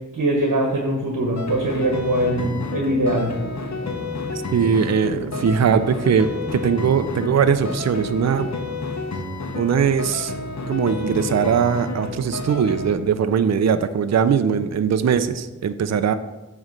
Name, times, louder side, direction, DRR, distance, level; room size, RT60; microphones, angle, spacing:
voice 1, 0.0-3.4, right 1 dB, 85° right, 0 dB, 1.1 m, -22 dB
sound 1, 1.3-12.9, left 3 dB, 60° left, 1.1 m, -30 dB
sound 2, 2.3-8.3, equal, 45° left, 1.6 m, -38 dB
voice 2, 4.5-8.5 9.5-10.3 10.7-16.1, right 7 dB, 60° right, 11 dB, 0.4 m, -20 dB
9.0 x 3.1 x 6.3 m, 1.1 s
wide cardioid pair, 65°, 31 cm